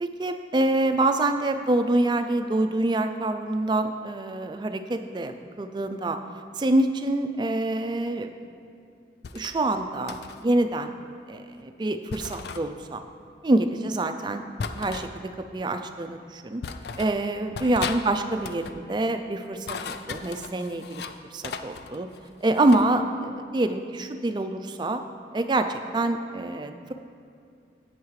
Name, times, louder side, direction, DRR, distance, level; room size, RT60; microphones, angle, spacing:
voice 1, 0.0-5.3 5.6-6.2 6.6-8.3 9.3-10.1 10.4-10.9 11.3-13.0 13.4-14.4 14.7-15.1 15.5-16.6 17.0-21.0 21.3-22.1 22.4-25.0 25.3-26.9, right 2 dB, 25° right, 7 dB, 0.3 m, -26 dB
sound 1, 9.2-9.6 10.1-10.4 12.1-12.6 14.6-15.1 16.0-16.1 16.6-17.2 17.5-18.0 18.3-18.8 19.5-21.2 21.4-22.9, left 5 dB, 60° left, 0.4 m, -36 dB
10.5 x 8.1 x 3.2 m, 2.4 s
head